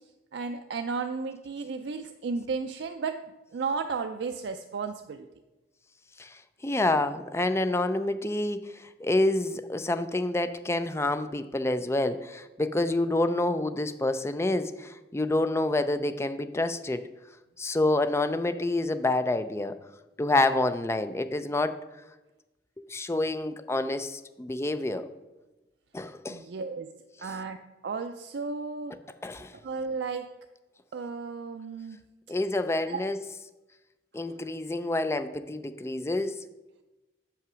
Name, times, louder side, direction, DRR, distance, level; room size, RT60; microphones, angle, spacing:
voice 1, 0.3-3.2 3.5-5.3 26.3-26.9 27.2-27.6 27.8-29.0 29.6-30.3 30.9-32.0 32.9-33.0, right 4 dB, 70° right, 6 dB, 0.4 m, -33 dB
voice 2, 6.6-17.0 17.6-19.7 20.2-21.8 22.9-25.1 25.9-26.4 29.2-29.5 32.3-33.2 34.1-36.4, left 2 dB, 15° left, 11 dB, 0.4 m, -28 dB
6.7 x 5.7 x 6.1 m, 1.0 s
head